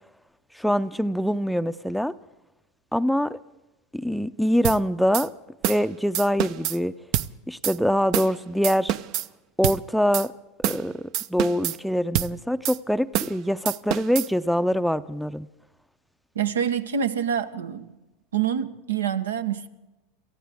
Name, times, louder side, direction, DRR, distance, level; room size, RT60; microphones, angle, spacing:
voice 1, 0.5-2.1 2.9-3.4 3.9-5.3 5.7-6.9 7.5-8.9 9.6-10.3 10.7-11.0 11.3-15.5, equal, ahead, 0.5 m, -24 dB
sound 1, 4.6-4.8 5.1-5.3 5.6-5.8 6.1-6.8 7.1-7.3 7.6-7.8 8.1-8.3 8.6-9.3 9.6-9.8 10.1-10.3 10.6-10.8 11.1-11.8 12.1-12.3 12.6-12.8 13.1-13.4 13.7-14.3, right 12 dB, 55° right, 0.6 m, -26 dB
voice 2, 16.3-18.0 18.3-19.7, right 8 dB, 85° right, 0.9 m, -26 dB
28.0 x 14.5 x 3.5 m
hypercardioid pair, 95°, 0 cm